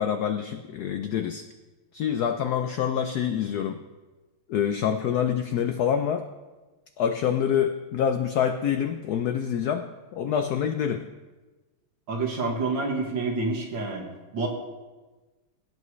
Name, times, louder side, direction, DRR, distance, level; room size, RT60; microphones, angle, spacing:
voice 1, 0.0-1.4 1.9-3.8 4.5-6.3 7.0-9.8 10.1-11.0, left 8 dB, 85° left, 7 dB, 0.8 m, -26 dB
voice 2, 12.1-14.0 14.3-14.5, right 3 dB, 65° right, 0 dB, 2.3 m, -28 dB
17.0 x 8.2 x 3.1 m, 1.2 s
omnidirectional pair, 2.3 m